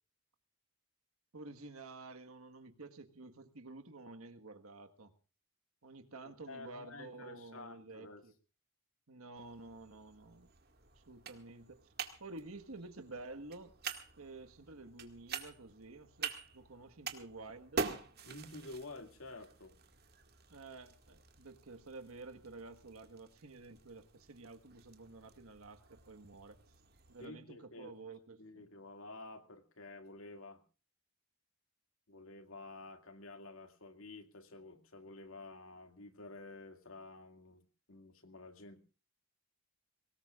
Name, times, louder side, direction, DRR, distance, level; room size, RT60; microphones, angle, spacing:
voice 1, 1.3-5.1 5.8-8.3 9.1-10.5 10.9-11.9 12.2-13.7 14.2-17.9 20.5-26.6 27.1-28.7, right 3 dB, 90° right, 7 dB, 1.5 m, -51 dB
voice 2, 6.5-8.2 18.2-19.8 27.2-28.0 28.4-30.6 32.1-37.6 37.9-38.8, left 2 dB, 75° left, 8 dB, 2.3 m, -51 dB
sound 1, 9.4-27.3, right 5 dB, 50° right, 2.0 m, -47 dB
24.0 x 19.0 x 2.4 m, 0.34 s
head